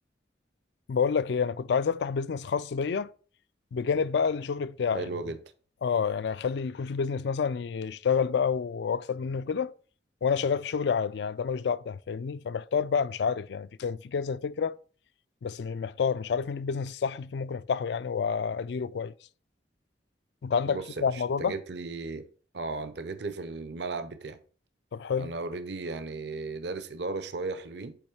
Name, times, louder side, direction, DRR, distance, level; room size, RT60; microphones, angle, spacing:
voice 1, 0.9-3.1 3.7-5.1 5.8-9.7 10.2-14.8 15.4-19.1 20.4-21.5 24.9-25.3, left 6 dB, 70° left, 0.4 m, -29 dB
voice 2, 4.9-5.4 20.6-22.3 22.5-24.4 25.2-28.0, right 3 dB, 70° right, 0.7 m, -35 dB
8.5 x 3.1 x 4.7 m
head